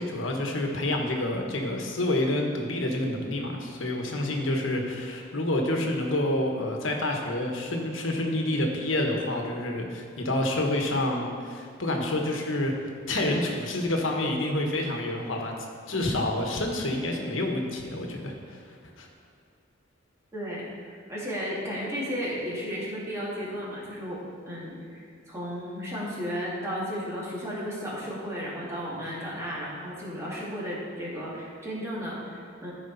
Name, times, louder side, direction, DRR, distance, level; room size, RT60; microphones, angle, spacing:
voice 1, 0.0-12.7 13.1-15.5 15.9-18.6 19.0-19.1, left 1 dB, 90° left, 2 dB, 1.2 m, -28 dB
voice 2, 20.3-24.2 24.5-32.7, equal, 15° right, -7 dB, 2.2 m, -34 dB
14.0 x 4.9 x 4.0 m, 2.2 s
head